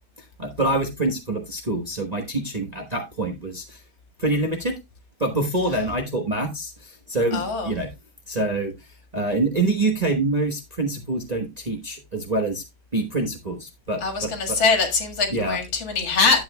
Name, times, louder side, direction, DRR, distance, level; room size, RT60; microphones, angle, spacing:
voice 1, 0.4-3.8 4.2-4.7 5.2-7.9 8.3-8.7 9.1-12.6 12.9-14.6 15.3-15.6, right 2 dB, 25° right, 1.0 m, -26 dB
voice 2, 7.3-7.7 14.0-16.4, left 4 dB, 75° left, 2.6 m, -22 dB
11.0 x 8.1 x 2.2 m
omnidirectional pair, 2.1 m